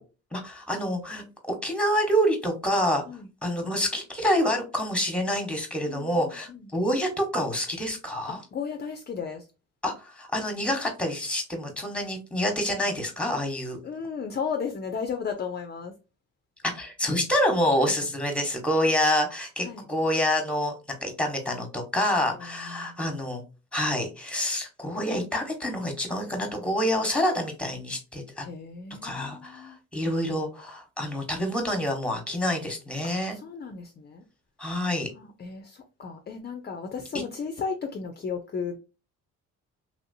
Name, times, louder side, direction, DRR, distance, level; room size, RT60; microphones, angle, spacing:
voice 1, 0.3-3.0 3.4-8.4 9.8-13.8 16.7-20.7 21.0-23.4 23.7-28.4 29.0-33.4 34.6-35.1, equal, 5° left, 1.1 m, -27 dB
voice 2, 5.9-6.7 8.5-9.5 13.8-15.9 17.8-17.9 19.6-19.9 22.4-23.0 28.4-29.8 33.0-33.1 33.4-34.2 35.2-38.8, left 6 dB, 35° left, 0.5 m, -35 dB
3.0 x 2.8 x 2.6 m
cardioid pair, 90°, 30 cm